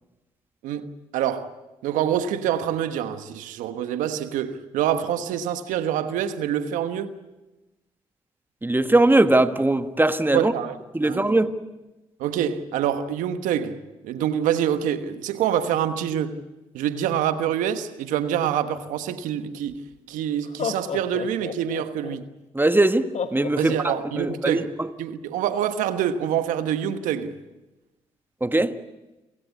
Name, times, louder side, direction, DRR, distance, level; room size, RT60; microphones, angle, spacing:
voice 1, 0.6-1.5 1.8-7.1 10.3-10.8 11.0-11.4 12.2-13.8 14.0-16.4 16.7-19.8 20.1-22.3 23.6-24.7 25.0-27.4, right 9 dB, 85° right, 1.2 m, -26 dB
voice 2, 8.6-10.5 10.9-11.5 22.5-24.9 28.4-28.8, right 2 dB, 15° right, 1.4 m, -21 dB
Laughter, 19.7-19.8 20.4-22.2 23.1-24.4, left 7 dB, 60° left, 1.6 m, -31 dB
27.5 x 16.5 x 8.4 m
supercardioid pair, 50°, 13 cm